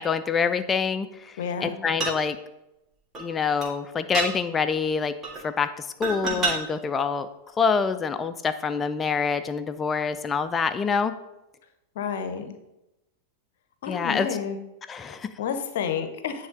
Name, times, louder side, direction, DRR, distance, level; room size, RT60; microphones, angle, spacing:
voice 1, 0.0-2.4 3.2-5.1 5.4-7.3 7.6-11.2 13.9-14.3 14.9-15.3, left 5 dB, 20° left, 11 dB, 0.4 m, -26 dB
voice 2, 1.4-1.8 11.9-12.5 13.8-14.6 15.4-16.5, left 7 dB, 55° left, 8 dB, 0.7 m, -30 dB
sound 1, 2.0-2.2 3.1-3.2 3.6-3.7 4.1-4.3 5.2-5.5 6.0-6.6 7.5-7.6, right 3 dB, 25° right, 1.8 m, -27 dB
9.4 x 3.3 x 3.9 m, 0.92 s
figure-of-eight pair, 90°, 0 cm